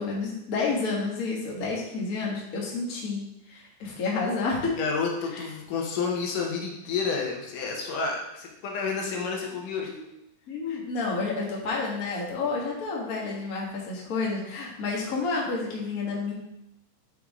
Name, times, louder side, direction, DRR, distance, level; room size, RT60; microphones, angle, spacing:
voice 1, 0.0-4.7 5.3-5.4 9.9-10.0 10.5-16.3, left 3 dB, 45° left, -3 dB, 1.2 m, -30 dB
voice 2, 4.8-9.9, left 5 dB, 80° left, 0 dB, 2.6 m, -30 dB
7.6 x 5.3 x 3.6 m, 0.87 s
omnidirectional pair, 3.8 m